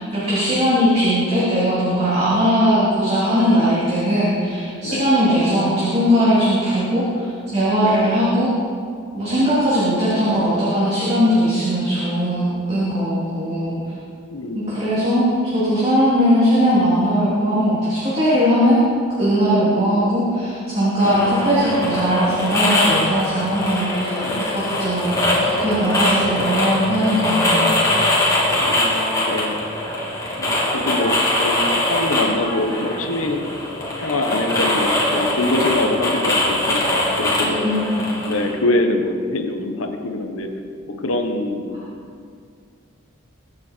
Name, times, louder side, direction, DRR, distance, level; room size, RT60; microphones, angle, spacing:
voice 1, 0.0-8.5 9.1-13.7 14.5-18.9 19.2-24.2 24.5-27.8 37.4-38.1, equal, 30° right, -9 dB, 3.3 m, -19 dB
voice 2, 4.8-5.1 7.8-8.1 9.3-9.7 14.3-14.8 19.6-19.9 21.0-21.4 24.2-24.6 28.6-29.6 30.4-33.5 34.0-37.6 38.3-40.5 41.0-41.8, left 2 dB, 85° left, 4 dB, 1.4 m, -24 dB
sound 1, 21.0-38.5, left 1 dB, 15° left, 2.6 m, -22 dB
22.0 x 8.6 x 4.6 m, 2.2 s
head